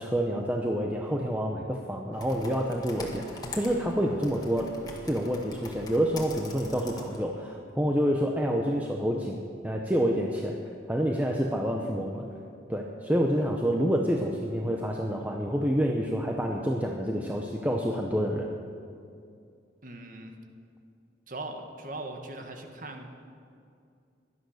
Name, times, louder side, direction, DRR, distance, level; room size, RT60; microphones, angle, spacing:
voice 1, 0.0-4.7 5.0-10.5 10.9-12.2 12.7-18.5, equal, 10° right, 0 dB, 0.9 m, -28 dB
Computer keyboard, 2.1-7.2, left 2 dB, 20° left, 1.8 m, -44 dB
voice 2, 19.8-20.3 21.3-23.1, right 2 dB, 45° right, 4 dB, 1.6 m, -40 dB
17.0 x 12.0 x 6.5 m, 2.4 s
head